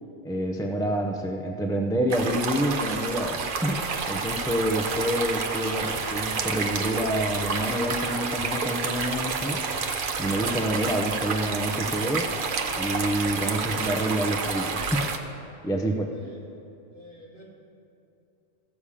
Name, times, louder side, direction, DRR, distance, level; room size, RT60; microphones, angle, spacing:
voice 1, 0.2-9.6 10.2-12.3 12.8-15.0 15.6-16.1, right 1 dB, 5° left, 2 dB, 0.4 m, -28 dB
sound 1, 2.1-15.2, right 4 dB, 50° right, 0.8 m, -29 dB
voice 2, 16.1-16.5 16.9-17.5, equal, 40° left, -6 dB, 2.7 m, -47 dB
15.0 x 7.1 x 4.9 m, 2.8 s
omnidirectional pair, 1.3 m